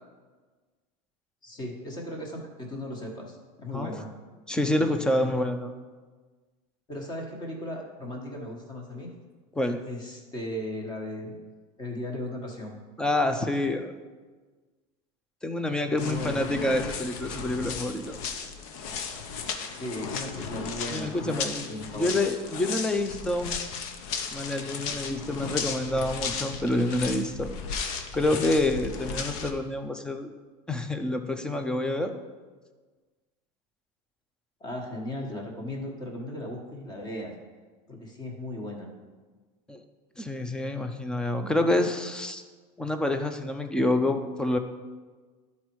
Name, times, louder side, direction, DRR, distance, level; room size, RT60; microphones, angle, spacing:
voice 1, 1.4-4.1 6.9-9.1 9.8-11.4 11.8-12.8 16.0-16.6 19.7-22.3 34.6-37.3 37.9-38.9, left 1 dB, 20° left, 1 dB, 1.4 m, -37 dB
voice 2, 4.5-5.7 9.6-9.8 13.0-13.9 15.4-18.2 20.9-21.7 21.9-23.6 24.3-27.5 28.1-30.3 30.7-32.2 39.7-39.8 40.2-42.4 42.8-44.6, left 1 dB, 5° left, 7 dB, 0.4 m, -27 dB
sound 1, 16.0-29.5, left 5 dB, 65° left, 0.9 m, -35 dB
12.0 x 4.2 x 4.6 m, 1.4 s
supercardioid pair, 155°, 19 cm